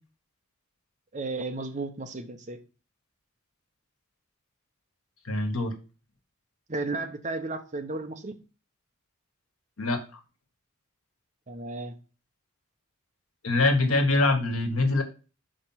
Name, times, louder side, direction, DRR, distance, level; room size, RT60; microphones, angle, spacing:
voice 1, 1.1-2.6 6.7-8.4 11.5-12.0, right 3 dB, 35° right, 0.9 m, -34 dB
voice 2, 5.3-5.7 9.8-10.0 13.4-15.0, left 2 dB, 90° left, 1.5 m, -24 dB
6.0 x 5.1 x 5.7 m
head